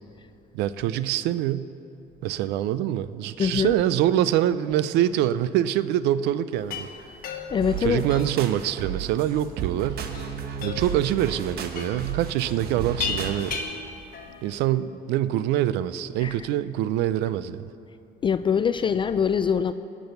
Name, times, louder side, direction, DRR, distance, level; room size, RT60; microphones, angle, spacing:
voice 1, 0.5-1.7 2.2-6.9 7.8-10.1 10.6-13.6 14.4-17.7, right 12 dB, 90° right, 15 dB, 0.5 m, -25 dB
voice 2, 3.4-3.7 7.5-8.0 16.2-16.3 18.2-19.7, left 7 dB, 30° left, 11 dB, 0.3 m, -23 dB
sound 1, 6.5-14.6, left 6 dB, 60° left, 1.2 m, -37 dB
sound 2, 7.6-13.6, right 8 dB, 65° right, 1.0 m, -34 dB
18.0 x 6.2 x 6.9 m, 2.7 s
cardioid pair, 110°, 17 cm